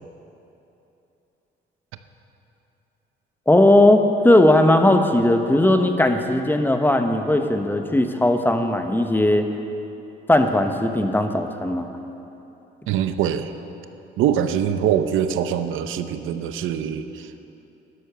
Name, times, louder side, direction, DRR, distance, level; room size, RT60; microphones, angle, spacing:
voice 1, 3.5-9.5 10.3-11.9, left 1 dB, 10° left, 6 dB, 1.0 m, -18 dB
voice 2, 12.9-13.5 14.2-17.5, right 9 dB, 85° right, 9 dB, 0.7 m, -23 dB
12.0 x 11.0 x 6.8 m, 3.0 s
cardioid pair, 90°, 20 cm